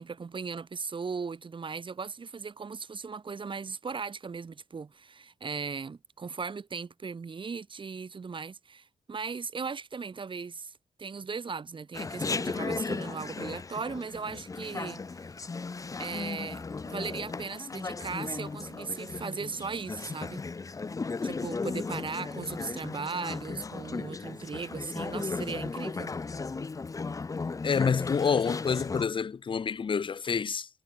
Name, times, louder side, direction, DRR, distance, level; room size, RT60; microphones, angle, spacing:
voice 1, 0.0-10.7 11.0-15.2 16.0-20.4 21.2-26.1, right 5 dB, 50° right, 5.7 m, -37 dB
Chatter, 11.9-29.1, left 4 dB, 30° left, 0.7 m, -36 dB
voice 2, 27.6-30.7, left 6 dB, 50° left, 1.1 m, -28 dB
supercardioid pair, 55°, 11 cm